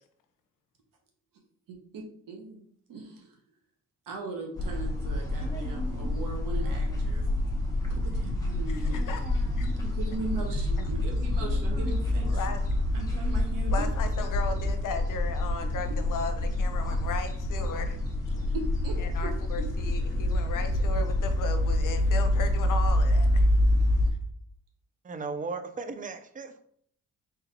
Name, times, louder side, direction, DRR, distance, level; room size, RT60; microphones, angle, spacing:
voice 1, 1.9-2.6 2.9-3.4 4.1-7.2 7.9-9.1 9.8-12.4 12.9-13.8 18.5-19.3, right 3 dB, 85° right, 1.1 m, -39 dB
sound 1, 4.6-24.1, left 1 dB, 10° left, 1.0 m, -27 dB
voice 2, 8.7-9.2 9.6-9.7 12.3-12.6 13.7-18.5 19.0-23.5, left 5 dB, 75° left, 0.7 m, -36 dB
voice 3, 25.0-26.6, right 4 dB, 25° right, 0.4 m, -36 dB
3.8 x 3.5 x 2.9 m
cardioid pair, 95°, 32 cm